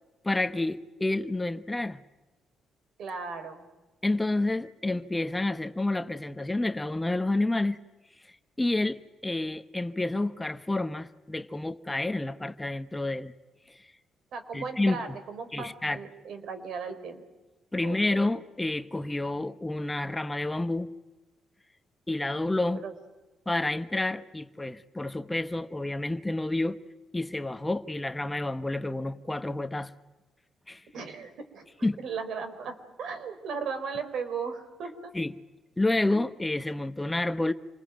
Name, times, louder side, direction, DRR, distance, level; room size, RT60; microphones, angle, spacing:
voice 1, 0.2-2.0 4.0-7.8 8.6-13.3 13.7-13.8 14.5-15.0 15.5-16.0 17.7-20.9 22.1-22.8 23.5-26.8 27.1-29.9 30.7-30.8 31.8-32.0 35.1-35.3 35.8-37.5, left 2 dB, 15° left, 1.0 m, -29 dB
voice 2, 3.0-3.7 14.3-17.2 17.8-18.2 22.7-22.9 30.9-31.7 32.0-35.1, right 5 dB, 70° right, 4.2 m, -36 dB
28.0 x 21.0 x 9.1 m
cardioid pair, 90°, 0 cm